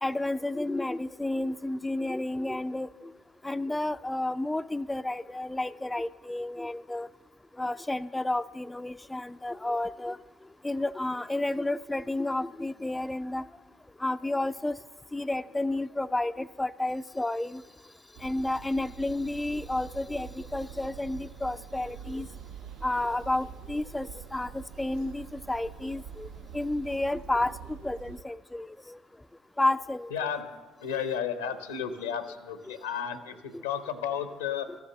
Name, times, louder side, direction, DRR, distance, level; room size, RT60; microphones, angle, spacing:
voice 1, 0.0-3.1 3.4-7.1 7.6-10.2 10.6-13.4 14.0-14.8 15.1-17.6 18.2-22.3 22.8-29.0 29.6-30.1 32.7-32.8 33.5-33.6 34.7-34.8, left 2 dB, 15° left, 12 dB, 0.3 m, -31 dB
sound 1, 18.1-28.2, right 8 dB, 70° right, 0.4 m, -45 dB
voice 2, 30.1-30.5 30.8-34.7, left 8 dB, 85° left, 10 dB, 0.8 m, -33 dB
13.5 x 7.1 x 7.1 m, 1.3 s
hypercardioid pair, 50°, 0 cm